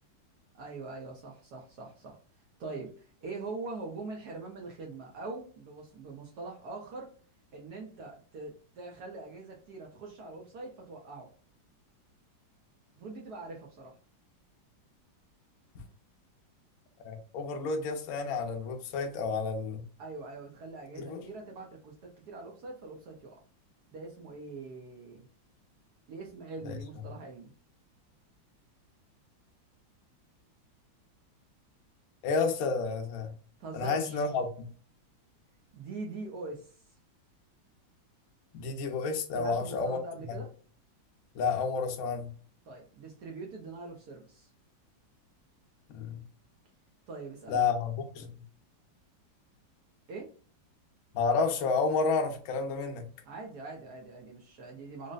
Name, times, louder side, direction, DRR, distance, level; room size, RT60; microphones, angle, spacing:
voice 1, 0.5-2.2 2.6-7.1 7.5-11.3 13.0-13.9 20.0-23.4 23.9-25.3 26.1-27.5 33.6-34.2 35.7-36.8 39.3-40.5 42.7-44.5 47.1-47.7 50.1-50.3 53.2-55.1, right 3 dB, 65° right, 0 dB, 1.1 m, -43 dB
voice 2, 17.0-19.8 20.9-21.2 26.6-26.7 32.2-33.3 33.7-34.7 38.5-40.0 40.3-40.4 41.3-42.3 45.9-46.2 47.5-48.4 51.1-53.0, left 4 dB, 65° left, 5 dB, 0.9 m, -30 dB
3.9 x 2.1 x 2.3 m, 0.42 s
omnidirectional pair, 2.1 m